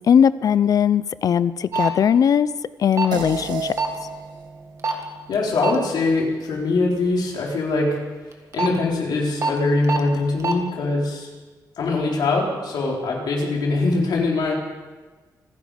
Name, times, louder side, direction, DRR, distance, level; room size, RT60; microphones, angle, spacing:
voice 1, 0.1-2.5 2.8-3.7, left 8 dB, 60° left, 17 dB, 0.5 m, -18 dB
sound 1, 1.7-1.9 2.9-3.1 3.8-4.0 4.8-5.0 5.6-5.8 8.3-8.7 9.4-9.5 9.8-10.0 10.4-10.5, right 4 dB, 45° right, 1.7 m, -22 dB
sound 2, 3.1-7.8, right 6 dB, 90° right, 2.0 m, -35 dB
voice 2, 5.3-8.0 8.5-11.3 11.8-14.5, left 3 dB, 80° left, -2 dB, 4.3 m, -22 dB
26.0 x 10.5 x 5.0 m, 1.3 s
wide cardioid pair, 145°, 7 cm